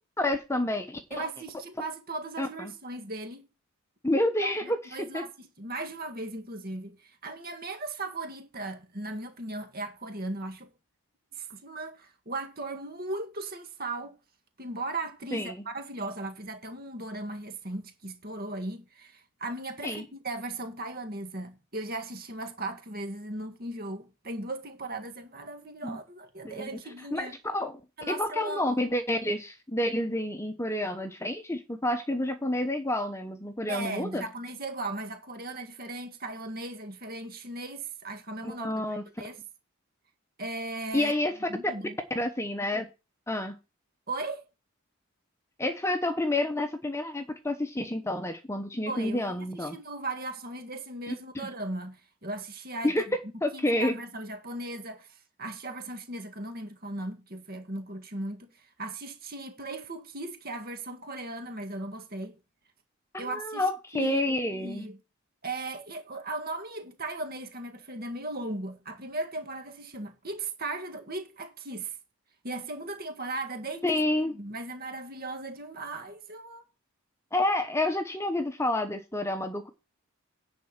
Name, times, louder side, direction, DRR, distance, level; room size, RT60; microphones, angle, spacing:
voice 1, 0.2-1.2 2.4-2.7 4.0-5.2 15.3-15.6 19.8-20.0 25.8-26.0 26.4-26.7 27.1-27.3 27.5-27.8 28.1-34.2 38.4-39.0 40.9-41.3 42.1-42.9 43.3-43.5 45.6-49.8 51.1-51.5 52.8-53.9 63.1-64.8 73.8-74.4 77.3-79.7, left 1 dB, 10° left, 0.9 m, -29 dB
voice 2, 1.1-3.5 4.4-10.7 11.3-14.2 14.6-27.3 28.0-28.8 33.7-38.9 39.2-39.4 40.4-41.1 41.5-42.0 44.1-44.5 48.9-53.2 53.5-62.4 63.2-64.2 64.5-65.0 65.4-72.0 72.4-73.8 74.3-76.6, right 2 dB, 45° right, 1.7 m, -37 dB
10.5 x 4.4 x 7.3 m
head